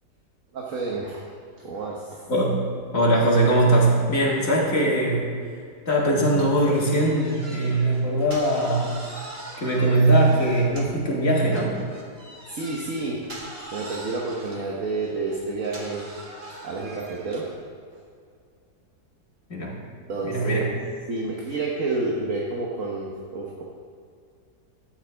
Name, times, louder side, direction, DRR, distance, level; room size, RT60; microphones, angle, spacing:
voice 1, 0.5-1.2 1.6-2.2 12.5-13.2 13.7-16.0 16.6-17.5 20.1-20.7 21.1-23.6, right 3 dB, 50° right, -2 dB, 1.4 m, -29 dB
voice 2, 2.9-5.3 5.9-8.9 9.6-11.7 19.5-19.8 20.3-20.7, right 1 dB, 45° left, -4 dB, 2.3 m, -21 dB
sound 1, 6.3-11.1 11.5-17.6, right 1 dB, 35° right, 1.8 m, -42 dB
12.5 x 8.9 x 3.4 m, 2.3 s
omnidirectional pair, 1.9 m